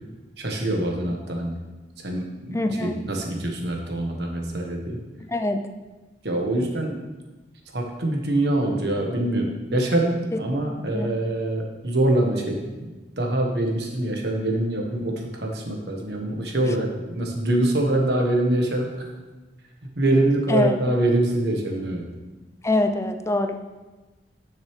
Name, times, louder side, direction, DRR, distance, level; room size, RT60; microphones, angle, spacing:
voice 1, 0.4-1.6 2.0-5.0 6.2-7.0 7.7-12.9 13.2-18.9 20.0-22.0, right 1 dB, 65° right, 1 dB, 1.4 m, -24 dB
voice 2, 2.5-3.0 5.3-5.6 10.9-11.1 20.5-20.8 22.6-23.6, left 2 dB, 15° left, 7 dB, 0.5 m, -23 dB
10.5 x 6.5 x 3.3 m, 1.2 s
head